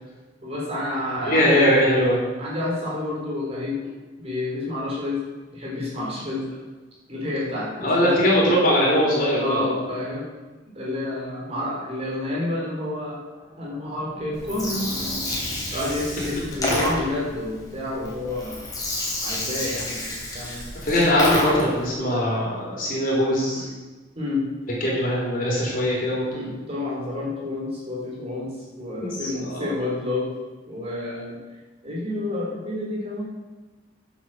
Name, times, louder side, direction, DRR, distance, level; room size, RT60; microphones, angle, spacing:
voice 1, 0.4-1.6 2.4-3.9 4.2-5.2 5.5-6.6 7.1-8.2 9.4-10.3 10.7-13.2 13.6-14.9 15.3-15.4 15.7-18.6 19.2-20.6 23.5-23.7 24.2-24.4 26.3-28.5 28.8-30.3 30.7-31.4 31.8-33.2, left 2 dB, 35° right, -4 dB, 3.7 m, -29 dB
voice 2, 1.2-2.2 7.8-9.7 15.7-15.8 20.8-23.6 24.8-26.4 29.0-29.1 29.5-29.7, equal, 45° left, -4 dB, 3.6 m, -21 dB
sound 1, 13.3-18.8 19.2-19.3 19.4-19.5 19.8-19.9, right 1 dB, 10° right, 3.4 m, -42 dB
Gurgling, 14.3-21.8, left 1 dB, 20° left, 3.0 m, -29 dB
9.7 x 7.5 x 6.7 m, 1.2 s
head